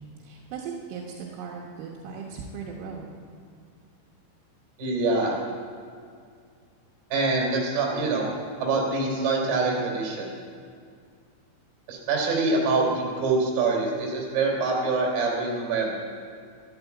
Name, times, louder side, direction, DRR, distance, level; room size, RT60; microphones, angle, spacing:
voice 1, 0.2-3.2, right 6 dB, 80° right, -2 dB, 3.8 m, -38 dB
voice 2, 4.8-5.3 7.1-8.3 8.6-10.4 11.9-15.9, right 3 dB, 50° right, -2 dB, 4.7 m, -25 dB
12.5 x 12.5 x 8.1 m, 2.2 s
omnidirectional pair, 5.9 m